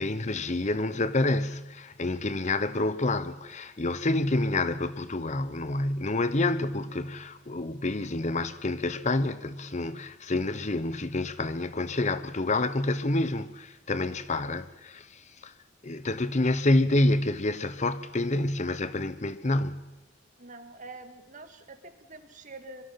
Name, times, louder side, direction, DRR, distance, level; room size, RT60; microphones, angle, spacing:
voice 1, 0.0-15.5 15.8-19.9, left 2 dB, 40° left, 0.9 m, -28 dB
voice 2, 20.4-22.8, right 2 dB, 40° right, 2.0 m, -46 dB
25.0 x 23.5 x 5.8 m
head